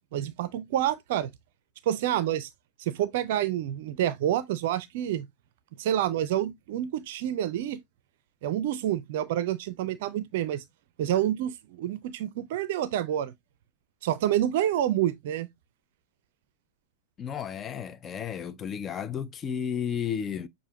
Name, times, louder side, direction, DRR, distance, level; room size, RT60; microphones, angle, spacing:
voice 1, 0.1-1.3 1.9-2.5 2.8-5.3 5.8-7.8 8.4-10.6 11.0-13.3 14.0-15.5, right 11 dB, 50° right, 0.5 m, -28 dB
voice 2, 17.2-20.5, left 8 dB, 25° left, 0.5 m, -33 dB
6.7 x 2.5 x 2.7 m
figure-of-eight pair, 90°, 0 cm